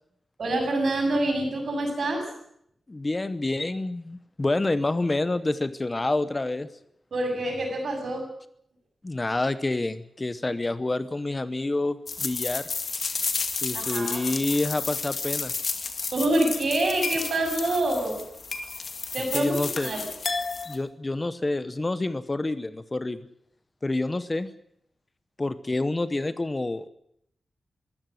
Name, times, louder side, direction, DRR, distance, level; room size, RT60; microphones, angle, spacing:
voice 1, 0.4-2.2 7.1-8.3 13.7-14.2 16.1-18.2 19.1-20.1, right 1 dB, 65° right, 3 dB, 7.7 m, -26 dB
voice 2, 2.9-6.7 9.0-12.7 13.6-15.5 19.3-19.9 20.7-23.2 23.8-24.5 25.4-26.9, left 2 dB, 20° left, 13 dB, 0.9 m, -28 dB
sound 1, 12.1-20.8, left 4 dB, 50° left, 2.2 m, -31 dB
22.5 x 16.0 x 7.9 m, 0.73 s
wide cardioid pair, 145°, 0 cm